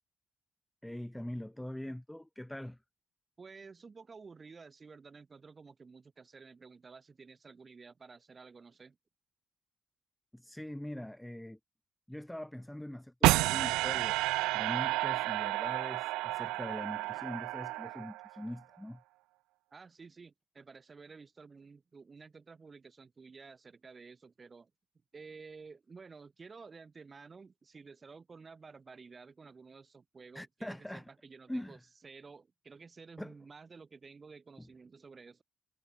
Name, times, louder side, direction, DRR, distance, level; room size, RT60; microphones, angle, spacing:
voice 1, 0.8-2.8 10.3-11.6 12.1-14.2 14.5-19.0 30.3-31.0 31.5-31.8 33.2-33.3 34.6-34.7, left 1 dB, 5° left, 1.0 m, -42 dB
voice 2, 3.4-9.0 19.7-24.7 25.1-35.4, right 4 dB, 40° right, 5.1 m, -52 dB
sound 1, 13.2-18.4, right 20 dB, 75° right, 0.5 m, -31 dB
hypercardioid pair, 45°, 0 cm